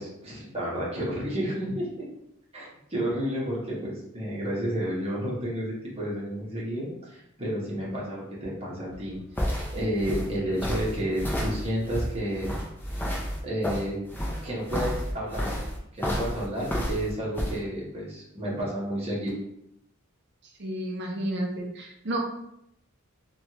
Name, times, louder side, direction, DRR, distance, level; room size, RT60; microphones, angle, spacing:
voice 1, 0.0-2.1 2.5-12.6 13.4-14.0 14.4-15.4 15.9-19.3, equal, 30° right, -6 dB, 0.9 m, -31 dB
sound 1, 8.9-17.6, equal, 10° left, 0.4 m, -31 dB
voice 2, 20.6-22.2, right 1 dB, 50° right, 1 dB, 0.5 m, -31 dB
3.0 x 2.2 x 2.8 m, 0.78 s
head